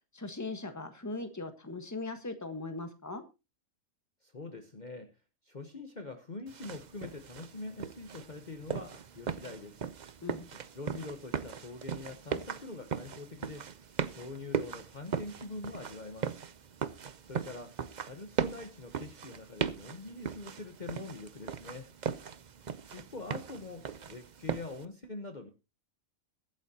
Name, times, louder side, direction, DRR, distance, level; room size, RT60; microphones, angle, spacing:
voice 1, 0.1-3.2 10.2-10.5, left 2 dB, 15° left, 7 dB, 1.4 m, -39 dB
voice 2, 4.2-5.2 5.4-9.8 10.5-16.4 17.3-21.9 22.9-25.5, left 3 dB, 35° left, 6 dB, 1.2 m, -44 dB
sound 1, 6.5-24.8, right 7 dB, 45° right, 0.6 m, -39 dB
22.0 x 8.9 x 2.9 m, 0.27 s
omnidirectional pair, 1.4 m